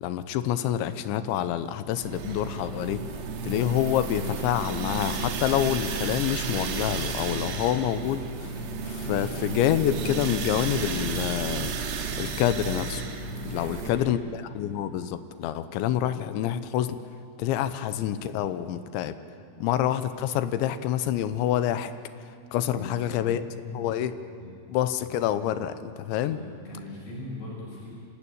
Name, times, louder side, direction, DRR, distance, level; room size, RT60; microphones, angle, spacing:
voice 1, 0.0-3.0 3.4-8.5 8.9-11.7 12.2-13.0 13.5-17.0 17.4-19.2 19.6-21.9 22.5-23.4 23.7-24.1 24.7-26.4, left 11 dB, 80° left, 11 dB, 3.1 m, -27 dB
sound 1, 2.0-13.9, right 4 dB, 70° right, 3.6 m, -32 dB
sound 2, 4.9-13.5 14.0-14.1 15.5-15.6, equal, 25° left, 8.7 m, -53 dB
voice 2, 13.5-14.2 17.6-17.8 19.5-19.7 22.7-23.8 24.4-24.5 25.0-25.1 26.3-27.9, left 2 dB, 60° left, -4 dB, 8.4 m, -41 dB
27.0 x 17.0 x 8.9 m, 2.4 s
omnidirectional pair, 5.4 m